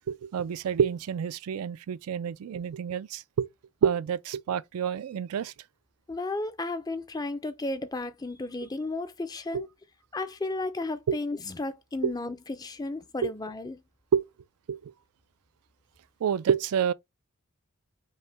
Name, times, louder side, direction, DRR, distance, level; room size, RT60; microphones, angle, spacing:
voice 1, 0.1-3.5 3.8-5.5 9.5-9.6 11.1-11.2 12.0-12.1 13.2-13.3 14.1-14.2 14.7-14.9 16.2-16.9, right 7 dB, 80° right, 0.3 m, -28 dB
voice 2, 6.1-9.7 10.1-13.8, left 2 dB, 15° left, 0.4 m, -33 dB
5.4 x 2.1 x 3.3 m
head